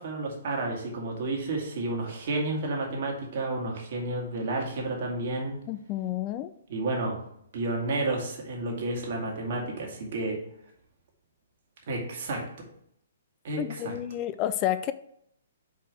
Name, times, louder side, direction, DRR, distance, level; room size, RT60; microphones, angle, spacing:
voice 1, 0.0-5.6 6.7-7.2 7.5-10.4 11.9-12.4 13.4-13.9, right 2 dB, 55° right, -1 dB, 2.2 m, -31 dB
voice 2, 5.7-6.5 13.6-14.9, left 12 dB, 30° left, 13 dB, 0.3 m, -30 dB
5.5 x 4.8 x 4.8 m, 0.72 s
hypercardioid pair, 130°, 0 cm